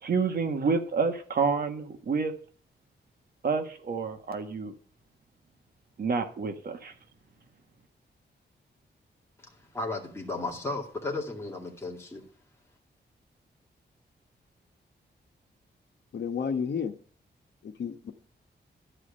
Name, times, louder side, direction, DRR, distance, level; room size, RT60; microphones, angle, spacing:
voice 1, 0.0-2.3 3.4-4.7 6.0-6.9, right 5 dB, 55° right, 6 dB, 1.6 m, -28 dB
voice 2, 9.7-12.2, left 2 dB, 15° left, -1 dB, 2.4 m, -34 dB
voice 3, 16.1-16.9 17.6-18.1, left 6 dB, 70° left, 6 dB, 1.3 m, -31 dB
12.0 x 5.0 x 8.7 m, 0.44 s
wide cardioid pair, 155°, 18 cm